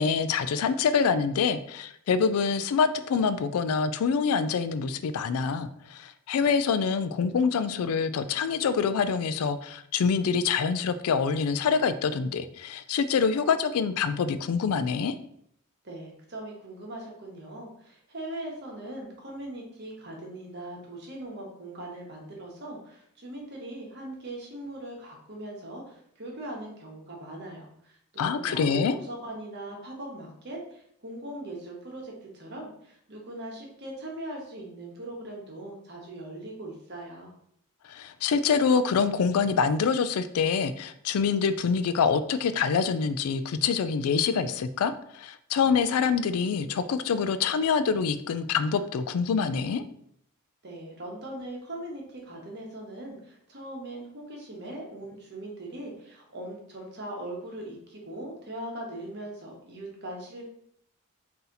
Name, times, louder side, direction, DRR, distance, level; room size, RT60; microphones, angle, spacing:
voice 1, 0.0-15.1 28.2-29.0 37.9-49.8, left 6 dB, 80° left, 12 dB, 0.3 m, -26 dB
voice 2, 15.8-37.3 50.6-60.4, right 1 dB, 50° right, -1 dB, 1.1 m, -40 dB
4.0 x 2.8 x 3.8 m, 0.69 s
head